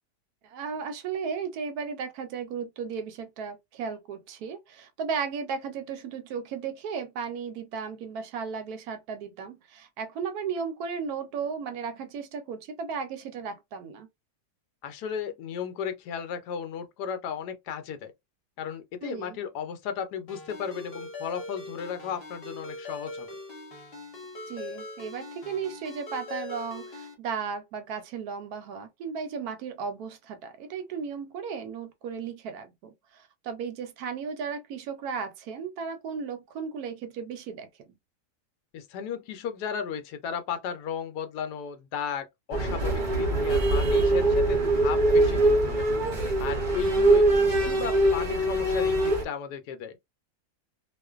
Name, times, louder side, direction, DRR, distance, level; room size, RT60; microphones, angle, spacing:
voice 1, 0.4-14.1 19.0-19.4 24.5-37.7, right 6 dB, 75° right, 1.0 m, -35 dB
voice 2, 14.8-18.1 18.6-23.3 38.7-45.9 46.4-50.0, left 8 dB, 80° left, 1.1 m, -35 dB
Ringtone, 20.3-27.1, left 3 dB, 45° left, 0.9 m, -41 dB
sound 1, 42.5-49.2, right 2 dB, 50° right, 0.6 m, -23 dB
2.4 x 2.4 x 2.3 m
omnidirectional pair, 1.8 m